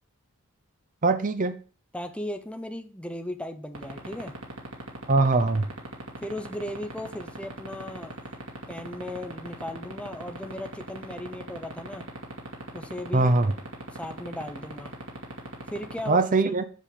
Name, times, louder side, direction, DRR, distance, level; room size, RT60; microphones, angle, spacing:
voice 1, 1.0-1.6 5.1-5.7 13.1-13.5 16.1-16.6, right 3 dB, 40° right, 0.6 m, -22 dB
voice 2, 1.9-4.3 6.2-8.1 8.7-12.1 12.7-13.3 13.9-14.9 15.7-16.3, left 1 dB, 5° left, 0.7 m, -36 dB
sound 1, 3.7-16.1, right 2 dB, 75° right, 2.6 m, -36 dB
7.5 x 5.5 x 6.9 m
head